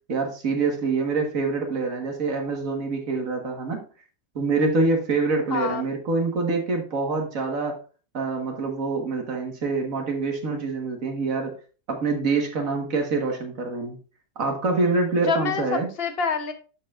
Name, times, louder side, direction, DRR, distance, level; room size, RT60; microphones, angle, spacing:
voice 1, 0.1-3.8 4.4-7.8 8.1-11.5 11.9-14.0 14.4-15.9, right 3 dB, 80° right, 3 dB, 1.9 m, -25 dB
voice 2, 5.5-5.9 15.3-16.5, left 5 dB, 50° left, 7 dB, 1.1 m, -26 dB
13.0 x 4.5 x 2.5 m, 0.36 s
omnidirectional pair, 1.4 m